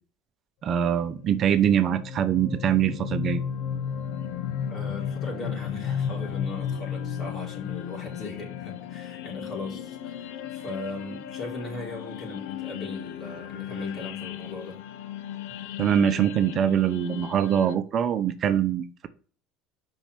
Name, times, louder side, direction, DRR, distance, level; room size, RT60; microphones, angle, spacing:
voice 1, 0.6-3.4 15.8-19.1, right 9 dB, 45° right, 10 dB, 0.8 m, -23 dB
sound 1, 1.0-17.7, left 8 dB, 80° left, 0.8 m, -35 dB
voice 2, 4.7-14.8, left 3 dB, 40° left, 0 dB, 4.2 m, -38 dB
5.9 x 5.7 x 6.7 m, 0.41 s
supercardioid pair, 110°, 0 cm